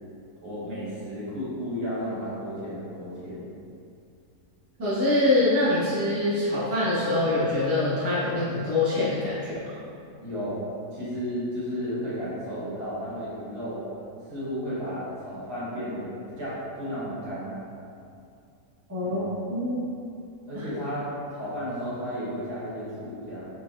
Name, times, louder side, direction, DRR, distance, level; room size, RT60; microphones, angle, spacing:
voice 1, 0.4-3.4 10.2-10.6 10.9-13.8 14.2-17.6 19.0-19.3 20.5-23.5, equal, 85° right, -10 dB, 1.9 m, -33 dB
voice 2, 4.8-9.6 18.9-19.2 19.5-19.9 20.5-20.7, left 2 dB, 10° right, -11 dB, 0.8 m, -24 dB
4.3 x 3.0 x 2.5 m, 2.5 s
omnidirectional pair, 1.7 m